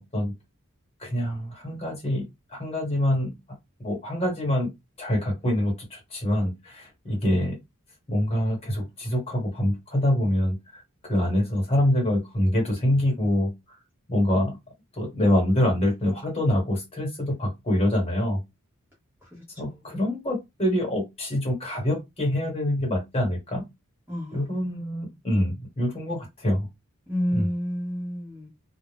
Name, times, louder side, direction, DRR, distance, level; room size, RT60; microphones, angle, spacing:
voice 1, 1.0-2.2 2.5-3.3 3.8-4.7 5.0-7.6 8.1-10.8 11.1-13.5 14.1-14.5 15.0-18.4 19.6-23.6 24.3-26.6 27.3-27.4, left 1 dB, 25° left, 1.3 m, -25 dB
voice 2, 19.2-20.0 24.1-25.0 27.1-28.5, equal, 10° right, 0.8 m, -31 dB
2.4 x 2.0 x 3.3 m
head